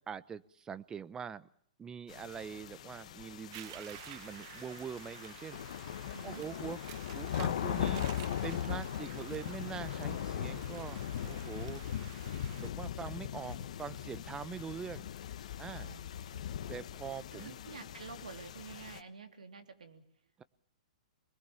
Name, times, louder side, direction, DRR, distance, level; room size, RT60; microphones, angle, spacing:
voice 1, 0.1-1.5 1.8-5.6 6.2-6.8 7.1-11.8 12.6-15.1 15.6-15.9 16.7-17.6 20.4-20.5, right 7 dB, 15° right, 15 dB, 0.9 m, -43 dB
sound 1, 2.1-19.0, left 10 dB, 60° left, 1.2 m, -39 dB
sound 2, 3.5-12.7, right 15 dB, 45° right, 0.9 m, -52 dB
voice 2, 6.1-6.5 15.7-16.5 17.3-20.0, right 5 dB, 80° right, 6 dB, 3.3 m, -49 dB
25.0 x 21.0 x 7.1 m, 0.65 s
hypercardioid pair, 120°, 4 cm